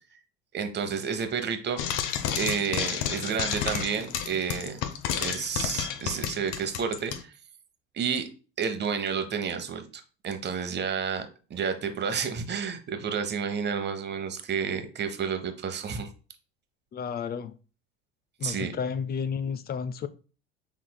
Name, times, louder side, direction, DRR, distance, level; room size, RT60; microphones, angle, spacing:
voice 1, 0.5-1.8 2.4-4.8 5.2-7.3 7.9-8.3 8.6-16.1 18.4-18.7, right 6 dB, 30° right, 0.9 m, -30 dB
Frying (food), 1.8-7.2, left 9 dB, 65° left, 0.8 m, -31 dB
voice 2, 16.9-17.5 18.4-20.1, left 6 dB, 30° left, 0.5 m, -32 dB
5.9 x 3.6 x 2.2 m
hypercardioid pair, 75°, 34 cm